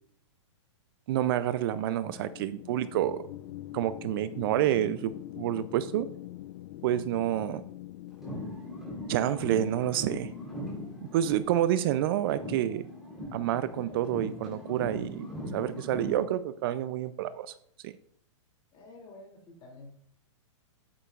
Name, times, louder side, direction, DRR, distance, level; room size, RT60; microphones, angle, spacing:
voice 1, 1.1-3.2 3.7-6.1 6.8-7.6 9.1-10.3 11.1-12.9 13.3-17.5 17.8-17.9, right 12 dB, 50° right, 15 dB, 0.5 m, -28 dB
sound 1, 2.1-14.2, left 15 dB, 45° left, 0.4 m, -46 dB
sound 2, 8.1-12.0 12.3-16.3, left 1 dB, ahead, 3.5 m, -40 dB
voice 2, 18.7-19.9, left 2 dB, 30° left, 0 dB, 2.8 m, -49 dB
9.1 x 8.6 x 2.4 m, 0.64 s
hypercardioid pair, 135°, 16 cm